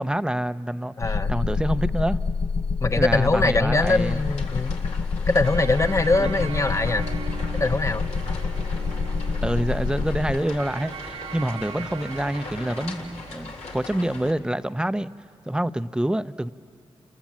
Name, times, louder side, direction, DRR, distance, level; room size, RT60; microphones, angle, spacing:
voice 1, 0.0-2.2 3.0-4.2 6.2-6.5 9.4-15.1 15.5-16.5, right 1 dB, 10° right, 13 dB, 0.6 m, -27 dB
sound 1, 1.0-10.4, left 5 dB, 60° left, 0.6 m, -27 dB
voice 2, 1.0-1.3 2.8-4.7 5.3-7.1 7.6-8.1, left 2 dB, 30° left, 11 dB, 0.9 m, -22 dB
sound 2, 3.8-14.3, left 3 dB, 90° left, 2.0 m, -40 dB
sound 3, 5.4-14.2, right 6 dB, 60° right, 0.9 m, -40 dB
29.0 x 20.5 x 7.5 m, 2.5 s
cardioid pair, 55°, 11 cm